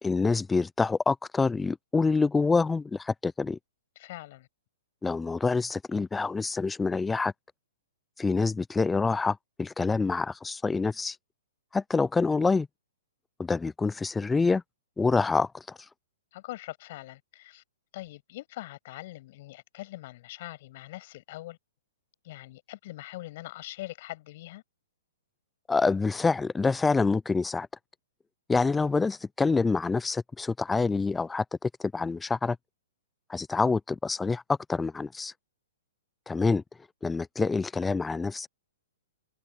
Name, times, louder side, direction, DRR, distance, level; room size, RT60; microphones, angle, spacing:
voice 1, 0.0-3.6 5.0-7.3 8.2-11.2 11.7-12.7 13.4-14.6 15.0-15.5 25.7-27.7 28.5-32.6 33.3-35.3 36.3-36.6 37.0-38.5, left 4 dB, 10° left, 0.6 m, -26 dB
voice 2, 4.0-4.5 16.3-17.6 17.9-21.6 22.2-24.6, left 17 dB, 50° left, 7.3 m, -42 dB
hypercardioid pair, 130°, 0 cm